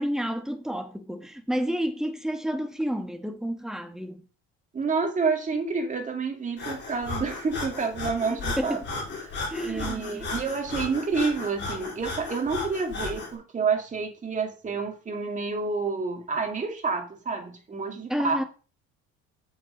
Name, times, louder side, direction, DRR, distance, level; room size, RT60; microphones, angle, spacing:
voice 1, 0.0-4.2 8.6-8.9 9.5-10.3 18.1-18.4, equal, ahead, 1.2 m, -30 dB
voice 2, 4.7-8.8 9.2-9.3 9.6-18.4, right 4 dB, 25° right, 2.3 m, -29 dB
Breathing, 6.6-13.3, left 3 dB, 35° left, 3.4 m, -35 dB
7.6 x 6.6 x 5.1 m
cardioid pair, 125°, 30 cm